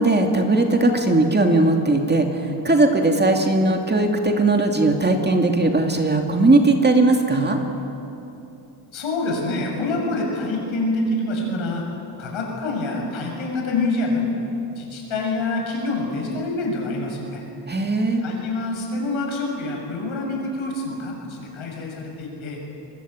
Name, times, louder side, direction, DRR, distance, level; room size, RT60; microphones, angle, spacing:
voice 1, 0.0-7.6 17.7-18.2, right 2 dB, 20° right, 3 dB, 2.5 m, -18 dB
voice 2, 8.9-11.8 12.2-14.3 14.7-17.4 18.2-22.6, left 2 dB, 85° left, 0 dB, 7.1 m, -26 dB
26.0 x 22.0 x 9.0 m, 2.9 s
cardioid pair, 125°, 46 cm